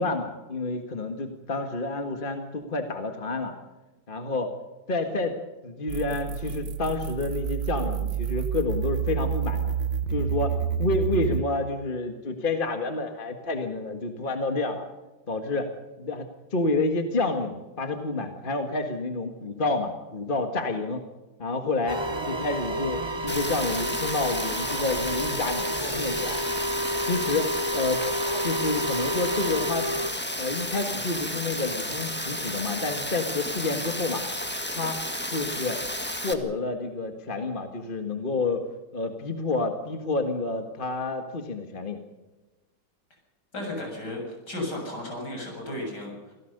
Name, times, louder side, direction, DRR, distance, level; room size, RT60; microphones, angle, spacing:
voice 1, 0.0-3.5 4.1-4.5 4.9-5.4 5.6-9.7 10.1-14.8 15.3-15.7 16.0-21.0 21.4-26.4 27.0-28.0 28.4-29.9 30.4-34.2 34.7-35.0 35.3-35.8 36.2-38.6 38.9-42.0, left 3 dB, 30° left, 6 dB, 1.8 m, -29 dB
sound 1, 5.9-11.4, right 7 dB, 80° right, 1.9 m, -29 dB
sound 2, 21.9-30.1, equal, 20° right, 0.8 m, -30 dB
Rain, 23.3-36.3, left 1 dB, 5° left, 1.5 m, -32 dB
voice 2, 43.5-46.3, left 1 dB, 70° left, 1 dB, 7.9 m, -34 dB
26.0 x 17.0 x 6.7 m, 1.1 s
omnidirectional pair, 1.9 m